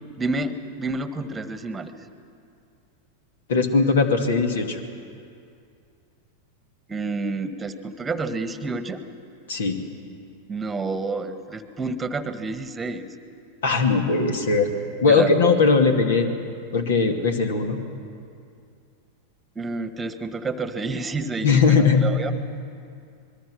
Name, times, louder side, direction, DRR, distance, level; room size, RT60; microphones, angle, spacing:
voice 1, 0.2-1.9 6.9-9.0 10.5-13.1 15.1-15.3 19.5-22.3, right 3 dB, 15° right, 10 dB, 1.4 m, -29 dB
voice 2, 3.5-4.8 9.5-9.8 13.6-14.7 15.0-16.3 16.7-17.8 21.4-22.0, left 4 dB, 60° left, 5 dB, 2.3 m, -19 dB
26.0 x 21.5 x 6.2 m, 2.4 s
figure-of-eight pair, 90°, 0 cm